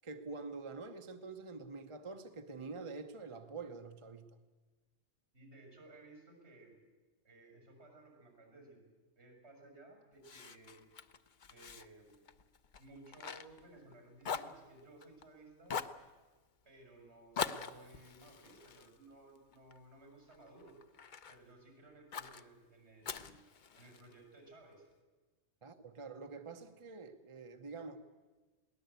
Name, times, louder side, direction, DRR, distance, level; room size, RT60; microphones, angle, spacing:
voice 1, 0.0-4.3 25.6-28.0, right 4 dB, 30° right, 7 dB, 0.9 m, -46 dB
voice 2, 5.3-6.7 7.2-8.8 9.2-10.8 11.5-12.3 12.8-15.8 16.6-20.8 21.3-23.5 23.8-24.9, right 2 dB, 70° right, 3 dB, 6.5 m, -58 dB
Fire, 10.2-13.9 14.2-15.3 15.7-16.0 17.3-19.8 20.3-21.4 22.1-22.4 23.0-24.1, left 6 dB, 45° left, 0.8 m, -43 dB
22.0 x 17.5 x 8.2 m, 1.3 s
omnidirectional pair, 1.2 m